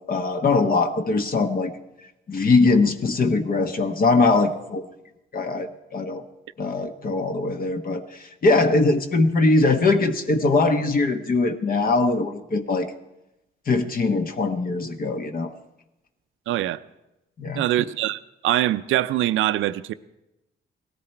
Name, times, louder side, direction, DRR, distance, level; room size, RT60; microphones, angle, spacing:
voice 1, 0.1-1.7 2.3-4.8 5.3-6.2 6.6-12.9 13.7-15.5 17.4-17.6, left 3 dB, 45° left, 1.1 m, -21 dB
voice 2, 16.5-16.8 17.5-19.9, right 14 dB, 80° right, 0.6 m, -23 dB
17.5 x 13.5 x 4.4 m
cardioid pair, 90°, 20 cm